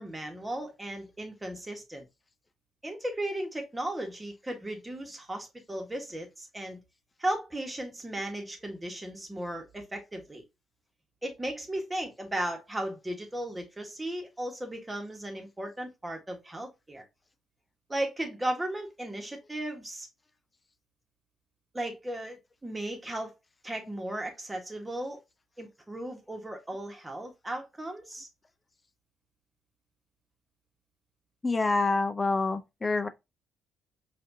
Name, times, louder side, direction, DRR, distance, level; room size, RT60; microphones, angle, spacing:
voice 1, 0.0-2.1 2.8-6.8 7.2-10.4 11.2-17.1 17.9-20.1 21.7-23.3 23.6-25.2 25.6-28.3, right 1 dB, 15° right, 1.3 m, -36 dB
voice 2, 31.4-33.1, left 3 dB, 25° left, 0.5 m, -27 dB
5.0 x 2.7 x 2.6 m
cardioid pair, 90°, 0 cm